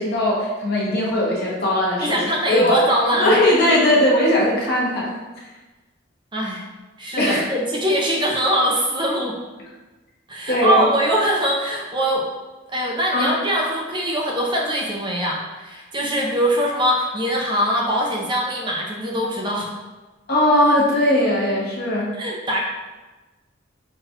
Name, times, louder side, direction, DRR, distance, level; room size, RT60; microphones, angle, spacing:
voice 1, 0.0-2.2 2.5-2.8 3.2-5.1 7.2-7.4 10.5-10.9 13.1-13.3 20.3-22.1, left 1 dB, 50° left, -5 dB, 1.0 m, -19 dB
voice 2, 2.0-3.3 6.3-6.6 7.0-9.4 10.3-12.3 12.7-19.7 22.1-22.6, equal, 25° right, -2 dB, 0.5 m, -22 dB
5.7 x 2.3 x 2.8 m, 1.2 s
head